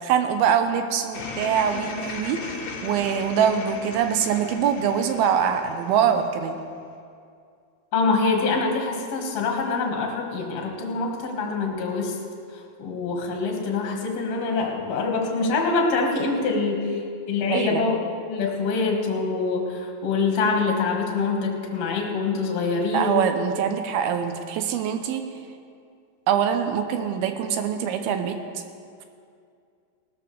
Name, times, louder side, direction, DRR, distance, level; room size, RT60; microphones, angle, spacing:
voice 1, 0.0-6.6 17.5-17.8 22.9-25.2 26.3-28.4, right 8 dB, 75° right, 7 dB, 2.5 m, -24 dB
sound 1, 1.1-6.6, left 4 dB, 70° left, 1.9 m, -37 dB
voice 2, 7.9-12.2 12.5-16.9 17.3-18.0 18.3-23.2, left 4 dB, 50° left, 0 dB, 2.2 m, -25 dB
19.0 x 13.0 x 3.3 m, 2.3 s
omnidirectional pair, 4.8 m